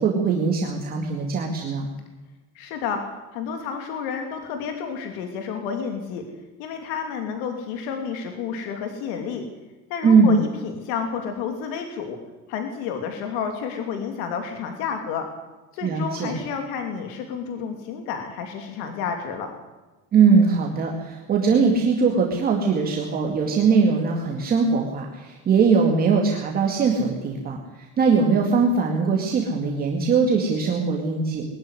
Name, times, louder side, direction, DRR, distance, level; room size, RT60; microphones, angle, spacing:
voice 1, 0.0-1.9 10.0-10.4 15.8-16.3 20.1-31.4, right 5 dB, 30° right, 1 dB, 2.3 m, -21 dB
voice 2, 2.5-3.0 3.3-6.2 6.6-9.4 9.9-12.2 12.5-15.3 15.7-19.5, left 6 dB, 85° left, 5 dB, 3.0 m, -30 dB
22.0 x 13.0 x 9.8 m, 1.2 s
cardioid pair, 175°, 32 cm